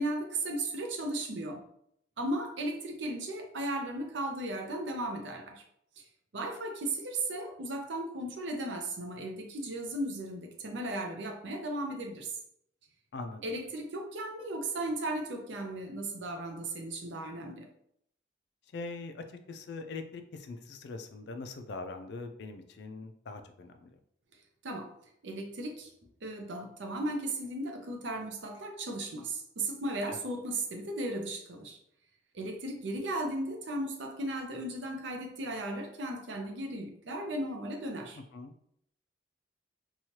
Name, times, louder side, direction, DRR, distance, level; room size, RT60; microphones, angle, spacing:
voice 1, 0.0-1.6 2.2-5.6 6.0-6.1 6.3-12.4 13.4-17.7 24.6-24.9 25.2-25.9 26.2-31.8 32.3-38.2, right 1 dB, 70° right, 3 dB, 0.6 m, -36 dB
voice 2, 13.1-13.4 18.7-23.9 30.1-30.2 38.3-38.5, left 3 dB, 60° left, 7 dB, 0.3 m, -42 dB
3.0 x 2.3 x 2.8 m, 0.71 s
head